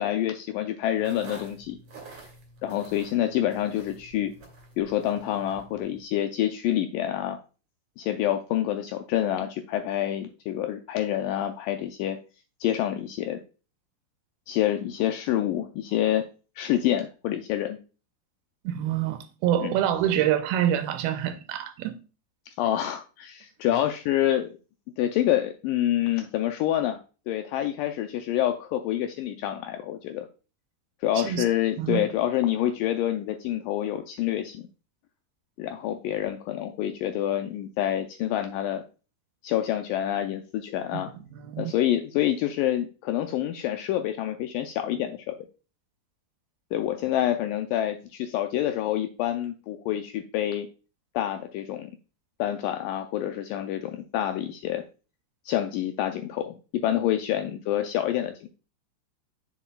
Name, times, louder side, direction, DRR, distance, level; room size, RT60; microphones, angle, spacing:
voice 1, 0.0-1.8 2.1-2.2 2.6-4.3 4.8-7.4 8.0-12.2 12.6-13.4 14.5-16.2 16.6-17.8 19.6-19.7 22.5-24.5 25.0-27.0 27.3-30.3 31.0-34.7 35.6-38.8 39.4-41.1 41.6-45.4 46.7-50.7 51.2-51.9 52.4-54.8 55.5-58.5, left 12 dB, 85° left, 1.9 m, -27 dB
sound 1, 1.0-6.0, right 3 dB, 45° right, 3.0 m, -48 dB
voice 2, 18.6-22.0 31.2-31.5 31.8-32.1 40.9-41.7, right 11 dB, 85° right, 2.5 m, -26 dB
7.2 x 6.9 x 2.2 m
omnidirectional pair, 4.3 m